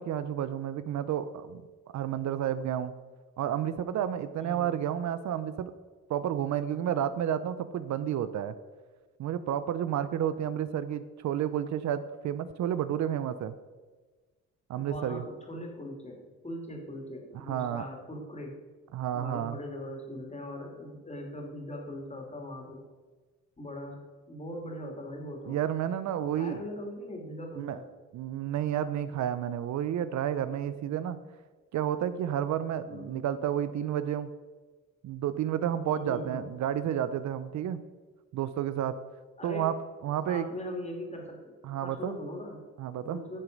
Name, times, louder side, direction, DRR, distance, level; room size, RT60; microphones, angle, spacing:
voice 1, 0.0-1.6 1.9-2.9 3.4-5.7 6.1-8.6 9.2-13.5 14.7-15.2 17.3-17.8 18.9-19.6 25.5-26.7 27.6-27.8 28.1-31.2 31.7-34.3 35.0-37.8 38.3-38.9 39.4-39.7 40.0-40.5 41.6-42.1 42.8-43.2, right 10 dB, 70° right, 13 dB, 0.6 m, -31 dB
voice 2, 4.4-4.7 14.8-18.6 19.1-22.8 23.6-24.0 24.3-25.6 26.2-27.8 32.9-33.2 35.9-36.4 39.4-39.7 40.3-42.6 43.0-43.4, left 1 dB, 20° left, 1 dB, 2.8 m, -40 dB
11.0 x 6.7 x 5.3 m, 1.3 s
cardioid pair, 90°, 30 cm